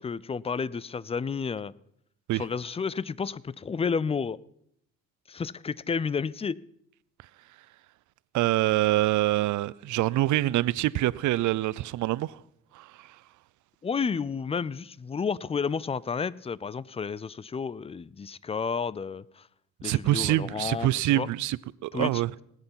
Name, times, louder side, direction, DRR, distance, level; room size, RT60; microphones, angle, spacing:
voice 1, 0.0-1.7 2.3-4.4 5.3-6.6 13.8-19.5 19.8-21.3 21.9-22.2, left 5 dB, 20° left, 0.4 m, -31 dB
voice 2, 8.3-12.4 12.7-13.2 19.8-22.3, right 16 dB, 75° right, 0.5 m, -25 dB
18.5 x 8.2 x 5.7 m
cardioid pair, 90°, 30 cm